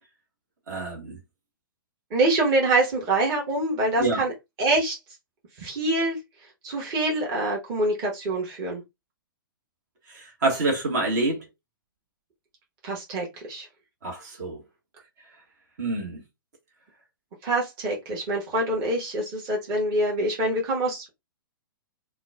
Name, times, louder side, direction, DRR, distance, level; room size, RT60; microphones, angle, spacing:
voice 1, 0.7-1.2 4.0-4.2 10.1-11.4 14.0-14.6 15.8-16.2, right 2 dB, 50° right, 1.3 m, -27 dB
voice 2, 2.1-4.3 4.6-5.0 5.6-6.2 6.6-8.8 12.8-13.7 17.4-21.1, right 2 dB, 30° right, 1.3 m, -25 dB
4.3 x 2.2 x 2.3 m
figure-of-eight pair, 115°, 12 cm